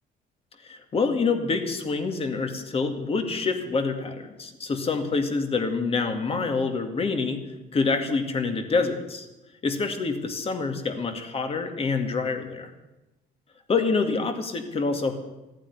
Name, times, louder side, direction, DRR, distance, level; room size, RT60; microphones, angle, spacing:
voice 1, 0.6-7.4 7.7-9.3 9.6-12.7 13.7-15.1, left 4 dB, 35° left, 6 dB, 2.2 m, -26 dB
14.5 x 9.0 x 9.8 m, 1.0 s
cardioid pair, 110°, 17 cm